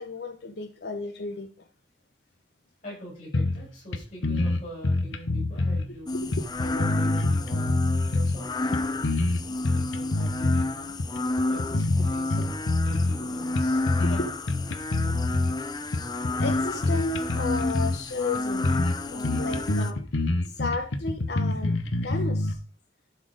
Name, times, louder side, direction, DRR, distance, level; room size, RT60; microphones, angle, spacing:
voice 1, 0.0-1.7 5.9-6.4 11.4-11.8 14.2-14.3 16.4-18.7 19.1-20.0 20.5-22.6, left 3 dB, 60° left, 4 dB, 0.8 m, -33 dB
voice 2, 2.8-6.2 6.6-7.8 8.1-8.9 9.5-11.0 11.5-12.6 12.8-14.3, equal, 40° left, -3 dB, 5.3 m, -43 dB
sound 1, 3.3-3.7 3.9-5.9 6.3-8.4 8.7-10.7 11.0-11.2 11.6-13.2 13.6-14.2 14.5-15.5 15.9-18.0 18.3-18.4 18.6-19.0 19.2-22.5, left 2 dB, 80° left, 0.9 m, -26 dB
sound 2, 6.1-19.9, left 2 dB, 20° left, 0.4 m, -31 dB
11.5 x 4.2 x 4.9 m, 0.38 s
head